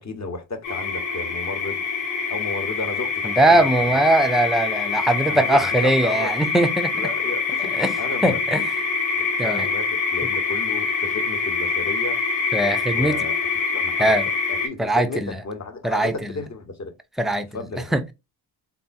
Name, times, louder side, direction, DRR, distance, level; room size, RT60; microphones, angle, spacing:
voice 1, 0.0-1.8 2.3-4.0 5.3-6.3 6.9-8.4 9.1-12.2 12.9-13.4 13.7-14.2 14.6-16.9 17.5-17.9, left 3 dB, 35° left, 1.0 m, -33 dB
sound 1, 0.6-14.7, left 5 dB, 80° left, 1.2 m, -25 dB
voice 2, 3.3-7.1 7.8-7.9 8.2-8.6 9.4-9.7 12.5-13.2 14.0-14.3 14.8-15.4 15.8-16.3 17.2-17.5 17.9-18.0, right 1 dB, ahead, 0.4 m, -20 dB
3.5 x 2.3 x 2.5 m
hypercardioid pair, 45°, 48 cm